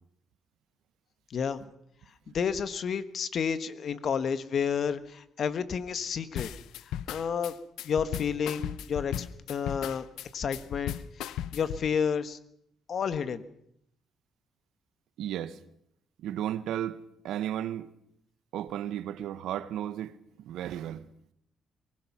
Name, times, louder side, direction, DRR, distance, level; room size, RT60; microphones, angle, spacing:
voice 1, 1.3-1.6 2.3-6.5 7.1-7.5 7.8-10.1 10.3-12.4 12.9-13.4, left 7 dB, 55° left, 1.4 m, -31 dB
sound 1, 6.4-11.9, left 11 dB, 85° left, 0.7 m, -36 dB
voice 2, 15.2-15.6 16.2-17.0 17.2-17.9 18.5-20.1 20.4-21.1, right 11 dB, 85° right, 1.1 m, -34 dB
23.0 x 19.5 x 6.1 m
cardioid pair, 90°, 0 cm